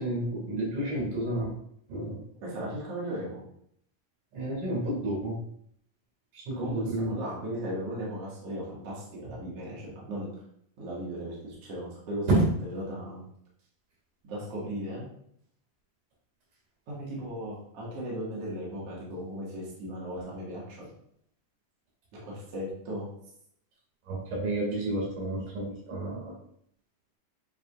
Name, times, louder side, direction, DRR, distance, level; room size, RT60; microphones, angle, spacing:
voice 1, 0.0-1.5 1.9-2.2 4.3-5.4 6.3-7.2 12.3-12.5 24.1-26.4, right 1 dB, 80° right, -3 dB, 3.7 m, -30 dB
voice 2, 2.4-3.4 6.6-10.3 10.8-13.2 14.3-15.1 16.9-20.9 22.2-23.1, equal, 55° right, -5 dB, 2.6 m, -37 dB
8.7 x 4.8 x 2.4 m, 0.69 s
omnidirectional pair, 3.6 m